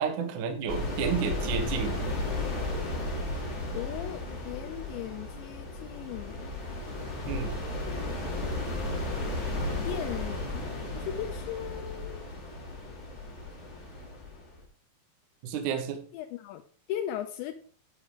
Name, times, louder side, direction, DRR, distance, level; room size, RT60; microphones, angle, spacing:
voice 1, 0.0-2.0 7.3-7.5 15.4-16.0, right 7 dB, 60° right, 6 dB, 2.2 m, -31 dB
sound 1, 0.7-14.6, left 2 dB, 20° left, 2.0 m, -34 dB
voice 2, 3.7-6.5 9.8-12.3 16.1-16.6 16.9-17.5, left 11 dB, 85° left, 5 dB, 3.0 m, -38 dB
10.5 x 9.0 x 3.7 m, 0.41 s
omnidirectional pair, 5.1 m